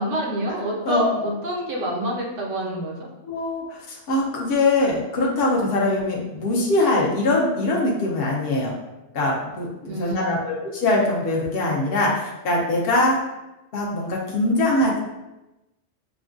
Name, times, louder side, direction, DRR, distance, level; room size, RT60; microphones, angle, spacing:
voice 1, 0.0-3.1 9.9-10.4, equal, 80° right, -2 dB, 1.2 m, -28 dB
voice 2, 0.8-1.2 3.2-8.7 9.1-13.2 13.7-15.0, left 2 dB, 55° left, -3 dB, 1.0 m, -22 dB
6.1 x 2.3 x 2.5 m, 0.99 s
omnidirectional pair, 1.2 m